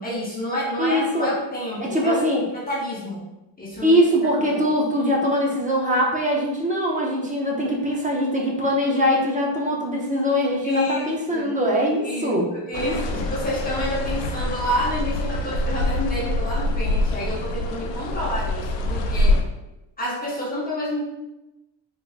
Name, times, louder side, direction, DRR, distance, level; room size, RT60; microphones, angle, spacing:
voice 1, 0.0-2.2 2.7-3.2 3.6-4.0 4.5-4.7 10.6-11.5 12.0-19.4 20.0-21.0, equal, 20° left, -6 dB, 0.8 m, -29 dB
voice 2, 0.8-1.3 1.8-2.4 3.8-12.5 12.8-13.2, equal, 15° right, -2 dB, 0.6 m, -22 dB
sound 1, 12.7-19.4, left 1 dB, 75° left, 0.5 m, -25 dB
3.6 x 3.2 x 2.4 m, 0.94 s
cardioid pair, 140°, 45 cm